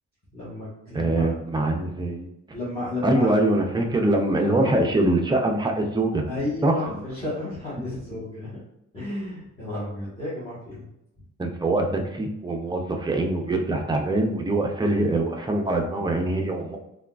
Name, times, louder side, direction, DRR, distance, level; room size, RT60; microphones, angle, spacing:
voice 1, 0.3-1.3 2.5-3.3 6.3-8.5 8.9-10.9, left 2 dB, 15° left, -11 dB, 1.1 m, -32 dB
voice 2, 0.9-2.3 3.0-6.2 6.6-7.0 11.4-16.8, right 2 dB, 15° right, 2 dB, 0.4 m, -23 dB
3.4 x 2.3 x 2.3 m, 0.83 s
cardioid pair, 125°, 30 cm